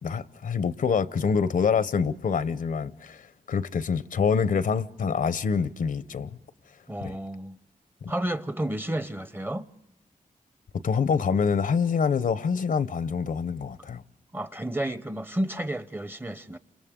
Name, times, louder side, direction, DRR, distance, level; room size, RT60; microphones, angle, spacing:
voice 1, 0.0-6.3 7.0-7.2 10.8-14.0, left 6 dB, 75° left, 0.7 m, -26 dB
voice 2, 6.9-7.6 8.1-9.7 14.3-16.6, right 1 dB, 15° right, 0.7 m, -31 dB
29.5 x 27.5 x 3.7 m
wide cardioid pair, 110°, 14 cm